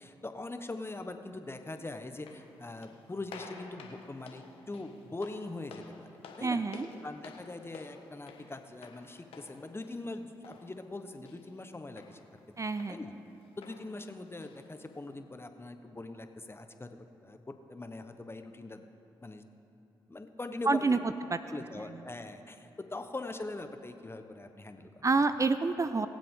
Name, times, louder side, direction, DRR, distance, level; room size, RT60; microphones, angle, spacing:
voice 1, 0.0-6.1 6.4-6.6 7.0-12.2 12.9-13.1 13.6-18.8 19.2-19.4 20.1-21.0 21.5-24.9, left 2 dB, 25° left, 7 dB, 1.1 m, -42 dB
sound 1, 2.1-15.1, left 5 dB, 80° left, 1.2 m, -53 dB
voice 2, 6.4-6.9 12.6-13.0 20.7-21.0 21.3-21.4 25.0-26.1, right 3 dB, 35° right, 11 dB, 0.5 m, -27 dB
22.0 x 7.6 x 3.8 m, 2.8 s
supercardioid pair, 45°, 10 cm